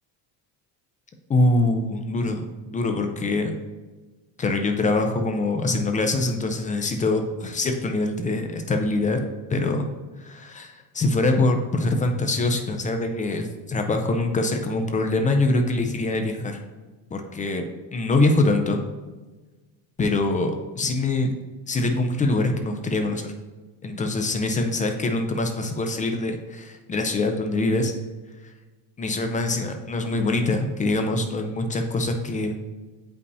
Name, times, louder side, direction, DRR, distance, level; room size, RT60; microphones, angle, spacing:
voice 1, 1.3-3.5 4.4-9.2 9.5-9.9 10.2-16.6 17.1-17.6 17.9-18.8 20.0-21.3 21.7-23.3 23.8-27.9 29.0-32.6, left 2 dB, 20° left, 5 dB, 0.3 m, -24 dB
8.1 x 5.4 x 2.7 m, 1.2 s
cardioid pair, 135°, 48 cm